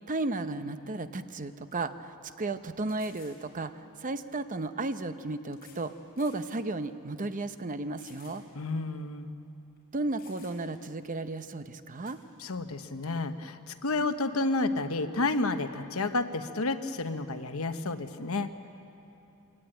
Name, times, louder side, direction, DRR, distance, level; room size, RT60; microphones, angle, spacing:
voice 1, 0.1-8.4 9.9-12.2, right 2 dB, 35° right, 10 dB, 0.8 m, -34 dB
sound 1, 1.1-1.2 1.7-1.8 2.9-3.4 4.5-4.6 5.5-5.9 6.2-6.4 7.0-7.1 8.0-8.4 8.8-8.9 9.8-9.9 10.2-10.8 12.0-12.2, left 6 dB, 45° left, 4.2 m, -56 dB
voice 2, 8.5-9.3 12.4-18.7, left 2 dB, 65° left, 9 dB, 1.0 m, -31 dB
23.5 x 17.5 x 9.0 m, 2.9 s
head